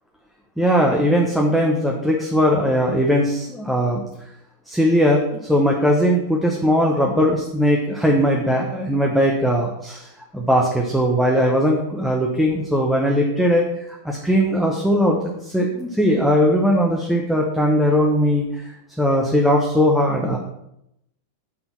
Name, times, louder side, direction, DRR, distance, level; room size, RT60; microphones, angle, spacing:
voice 1, 0.6-4.0 4.7-5.2 5.5-13.6 14.0-20.4, equal, ahead, -1 dB, 0.9 m, -19 dB
6.0 x 3.9 x 5.8 m, 0.81 s
figure-of-eight pair, 90°, 0 cm